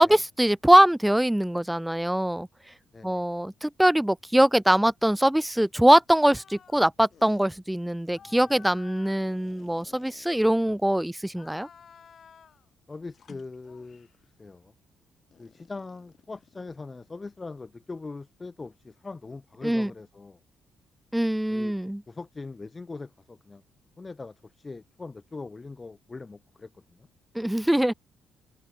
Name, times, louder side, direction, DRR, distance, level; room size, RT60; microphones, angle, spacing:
voice 1, 0.0-2.5 3.0-11.7 19.6-19.9 21.1-22.0 27.4-27.9, right 1 dB, 5° right, 0.3 m, -22 dB
voice 2, 2.9-3.3 8.1-8.4 12.9-14.1 14.4-14.7 15.4-20.4 21.5-21.8 22.1-23.6 24.0-27.1, left 3 dB, 25° left, 2.2 m, -41 dB
sound 1, 6.2-6.8 7.1-7.5 8.1-10.9 11.3-12.7 13.1-14.2 15.3-17.1, left 7 dB, 50° left, 3.9 m, -54 dB
cardioid pair, 90°, 0 cm